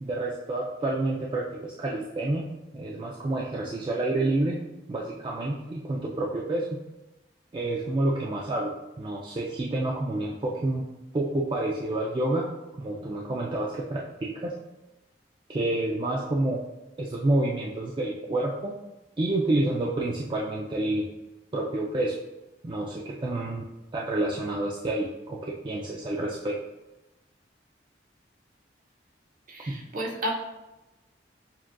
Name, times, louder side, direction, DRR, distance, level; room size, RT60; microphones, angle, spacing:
voice 1, 0.0-2.5 2.7-4.6 4.9-6.8 7.5-10.9 11.1-12.5 12.8-14.6 15.5-16.6 17.0-18.7 19.2-21.1 21.5-22.2 22.6-23.6 23.9-26.6 29.7-29.8, right 2 dB, 25° right, -3 dB, 0.3 m, -28 dB
voice 2, 29.5-30.3, equal, 45° right, 0 dB, 0.7 m, -32 dB
7.1 x 2.4 x 2.2 m, 1.0 s
head